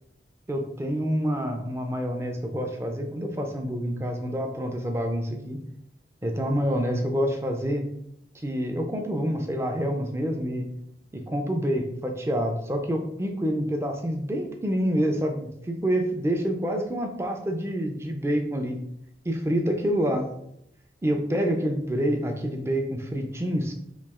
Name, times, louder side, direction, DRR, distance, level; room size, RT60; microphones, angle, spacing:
voice 1, 0.5-5.6 6.2-7.8 8.3-10.7 11.1-18.8 19.2-20.3 21.0-23.7, equal, 15° right, 4 dB, 0.4 m, -27 dB
3.1 x 2.7 x 3.5 m, 0.76 s
head